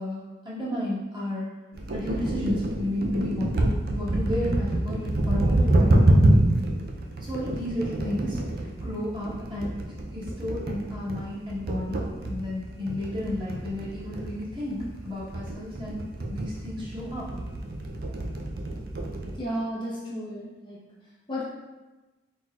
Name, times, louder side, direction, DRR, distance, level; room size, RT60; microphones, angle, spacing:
voice 1, 0.0-1.5 1.9-6.0 7.2-17.2, left 1 dB, 25° right, -9 dB, 1.4 m, -32 dB
sound 1, 1.7-19.4, right 1 dB, 55° right, 0.5 m, -27 dB
voice 2, 19.4-20.8 21.3-21.4, equal, 25° left, -6 dB, 0.7 m, -32 dB
4.3 x 4.1 x 2.4 m, 1.1 s
head